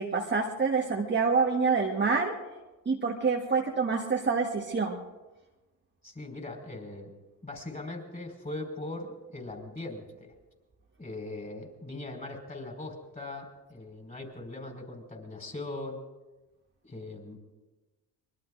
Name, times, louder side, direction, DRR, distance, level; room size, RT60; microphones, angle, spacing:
voice 1, 0.0-2.3 2.8-5.0, right 4 dB, 25° right, 0 dB, 1.4 m, -27 dB
voice 2, 6.0-7.1 7.4-10.3 11.0-16.0 16.8-17.4, left 2 dB, 20° left, 3 dB, 5.0 m, -40 dB
24.5 x 21.5 x 2.6 m, 1.2 s
supercardioid pair, 70°, 42 cm